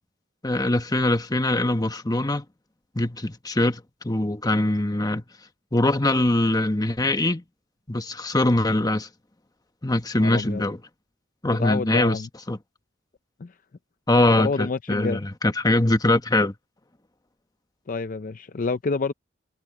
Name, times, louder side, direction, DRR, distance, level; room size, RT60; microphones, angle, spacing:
voice 1, 0.4-2.4 2.9-5.2 5.7-7.4 7.9-9.1 9.8-10.8 11.4-12.2 12.5-12.6 14.1-16.5, left 1 dB, 20° left, 1.1 m, -22 dB
voice 2, 10.2-10.6 11.6-12.3 13.4-13.5 14.4-15.2 17.9-19.1, left 4 dB, 45° left, 0.5 m, -28 dB
head